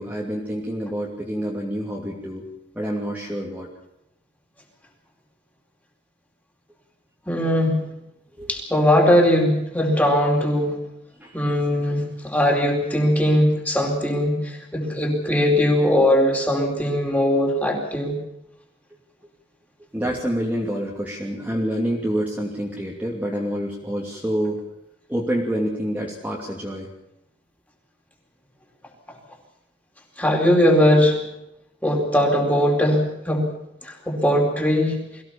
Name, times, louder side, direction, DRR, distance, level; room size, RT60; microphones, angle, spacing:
voice 1, 0.0-2.5 2.7-3.7 8.4-8.5 11.2-11.4 19.9-24.6 25.1-26.9, equal, 10° right, -3 dB, 2.8 m, -27 dB
voice 2, 7.3-7.8 8.5-10.8 11.3-18.2 30.2-31.2 31.8-33.5 33.8-35.0, left 1 dB, 10° left, 1 dB, 4.4 m, -20 dB
23.5 x 16.5 x 7.2 m, 0.84 s
head